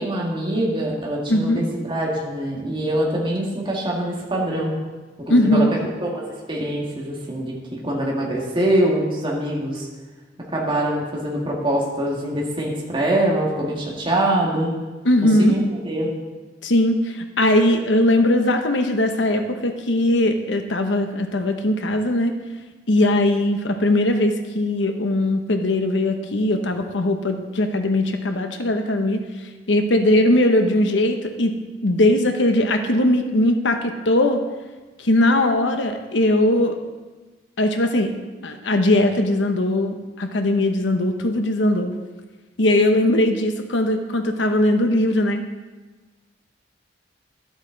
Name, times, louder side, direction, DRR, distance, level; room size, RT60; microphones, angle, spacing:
voice 1, 0.0-4.8 5.2-5.7 6.0-9.9 10.5-14.7 15.2-16.1, right 1 dB, 30° right, -3 dB, 1.9 m, -24 dB
voice 2, 1.3-1.6 5.3-5.7 15.0-15.6 16.6-22.3 22.9-29.2 29.7-31.5 31.8-34.4 35.0-36.8 37.6-38.1 38.4-41.9 42.6-45.4, left 1 dB, 75° left, 6 dB, 1.0 m, -19 dB
12.0 x 8.1 x 3.9 m, 1.3 s
head